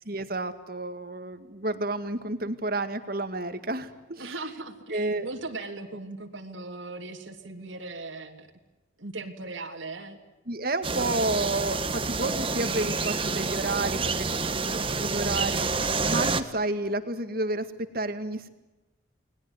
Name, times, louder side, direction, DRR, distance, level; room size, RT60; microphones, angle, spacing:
voice 1, 0.1-4.3 4.9-5.3 10.5-15.7 16.1-17.7 17.9-18.5, right 2 dB, 50° right, 9 dB, 2.1 m, -30 dB
voice 2, 4.2-8.5 9.0-10.2, right 3 dB, 80° right, 3 dB, 3.1 m, -38 dB
sound 1, 10.8-16.4, right 4 dB, 25° right, 1.4 m, -28 dB
30.0 x 20.5 x 9.7 m, 1.1 s
head